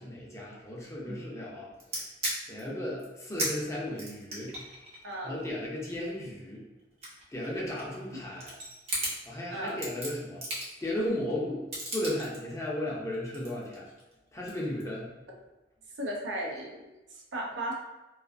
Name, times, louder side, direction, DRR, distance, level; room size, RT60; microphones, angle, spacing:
voice 1, 0.0-2.0 2.5-4.6 5.2-6.7 7.3-8.6 9.3-10.4 10.8-13.9 14.3-15.1, left 1 dB, 15° left, -4 dB, 0.5 m, -35 dB
sound 1, 1.8-2.6 3.0-3.1 3.4-3.5 3.9-6.3 6.8-8.0 8.3-9.2 9.7-10.9 11.7-12.4 13.1-14.1 14.5-14.8, right 1 dB, 35° right, 0.7 m, -36 dB
voice 2, 5.0-5.4 9.5-9.7 16.0-16.9 17.1-17.7, right 1 dB, 80° right, -1 dB, 0.6 m, -35 dB
2.4 x 2.3 x 2.5 m, 1.1 s
head